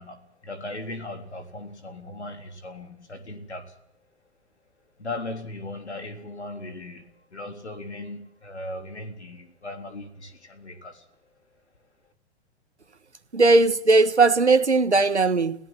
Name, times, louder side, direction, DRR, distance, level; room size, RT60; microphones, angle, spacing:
voice 1, 0.0-3.8 5.0-11.1, left 2 dB, 80° left, 3.7 m, -38 dB
voice 2, 13.3-15.6, right 3 dB, 85° right, 1.5 m, -18 dB
21.5 x 17.0 x 7.7 m
figure-of-eight pair, 100°, 33 cm